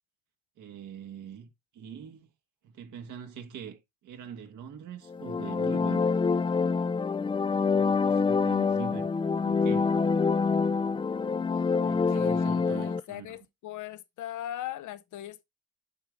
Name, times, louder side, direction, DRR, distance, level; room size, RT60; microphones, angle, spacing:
voice 1, 0.6-2.3 2.6-6.5 7.5-9.9 11.7-13.4, right 8 dB, 80° right, 1.6 m, -43 dB
sound 1, 5.1-13.0, left 5 dB, 15° left, 0.4 m, -26 dB
voice 2, 11.5-15.4, left 12 dB, 75° left, 0.8 m, -40 dB
7.9 x 5.0 x 3.2 m
cardioid pair, 90°, 30 cm